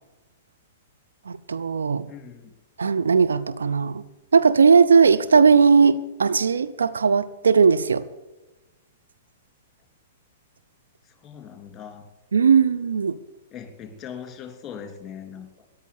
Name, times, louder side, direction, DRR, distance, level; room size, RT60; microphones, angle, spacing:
voice 1, 1.3-2.1 2.8-4.0 4.3-8.0 12.3-13.2, right 5 dB, 70° right, 0.7 m, -18 dB
voice 2, 2.1-2.5 11.0-12.0 13.5-15.6, left 8 dB, 20° left, 3.2 m, -40 dB
13.5 x 11.0 x 8.6 m
figure-of-eight pair, 105°, 0 cm